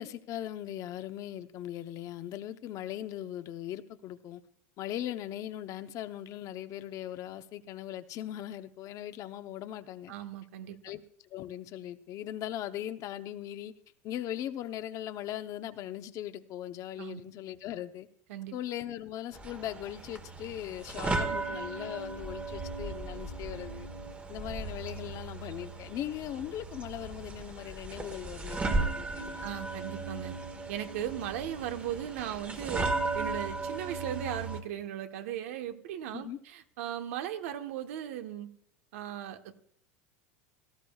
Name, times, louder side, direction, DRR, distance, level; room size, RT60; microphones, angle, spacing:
voice 1, 0.0-4.4 4.8-10.1 10.8-11.0 11.3-13.7 14.0-18.1 18.5-23.9 24.3-29.5 36.1-36.4, left 12 dB, 50° left, 0.8 m, -39 dB
voice 2, 10.1-10.8 17.0-17.2 18.3-18.6 21.3-21.4 29.4-30.3 30.7-32.9 33.1-38.5 38.9-39.6, right 11 dB, 75° right, 1.2 m, -37 dB
sound 1, 19.3-34.6, right 3 dB, 20° right, 1.3 m, -36 dB
17.5 x 13.5 x 2.4 m
supercardioid pair, 110°, 7 cm